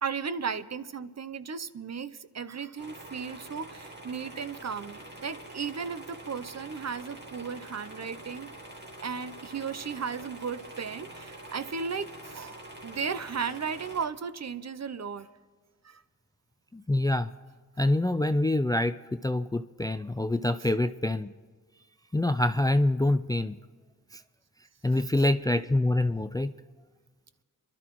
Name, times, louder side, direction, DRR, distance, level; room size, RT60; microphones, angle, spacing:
voice 1, 0.0-8.5 9.0-15.3 15.8-16.0, right 6 dB, 45° right, 13 dB, 0.7 m, -35 dB
sound 1, 2.8-14.1, right 1 dB, 30° right, 2.3 m, -46 dB
voice 2, 16.7-17.3 17.8-21.3 22.1-23.6 24.1-24.2 24.8-26.5, left 1 dB, 10° left, 12 dB, 0.4 m, -26 dB
28.5 x 11.5 x 3.1 m, 1.4 s
cardioid pair, 45°, 37 cm